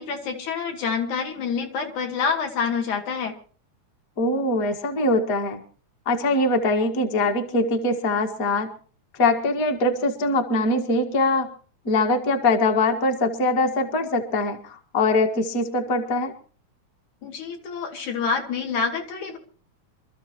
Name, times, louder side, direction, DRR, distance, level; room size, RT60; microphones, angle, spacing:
voice 1, 0.0-3.3 17.2-19.4, left 5 dB, 70° left, 2 dB, 3.8 m, -27 dB
voice 2, 4.2-5.6 6.0-8.7 9.2-11.5 11.8-16.3, left 2 dB, 35° left, 4 dB, 1.7 m, -22 dB
27.0 x 13.5 x 3.0 m, 0.40 s
omnidirectional pair, 3.6 m